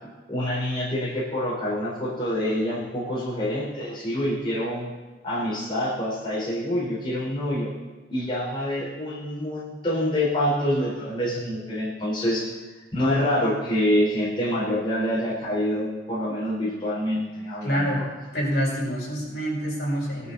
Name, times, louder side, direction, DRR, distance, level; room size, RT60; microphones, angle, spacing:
voice 1, 0.0-4.9 5.2-7.7 8.1-12.5 12.9-18.0, left 1 dB, 25° left, -8 dB, 4.8 m, -26 dB
voice 2, 17.6-18.0 18.3-20.3, equal, 60° left, -5 dB, 6.0 m, -26 dB
20.0 x 12.0 x 4.3 m, 1.3 s
head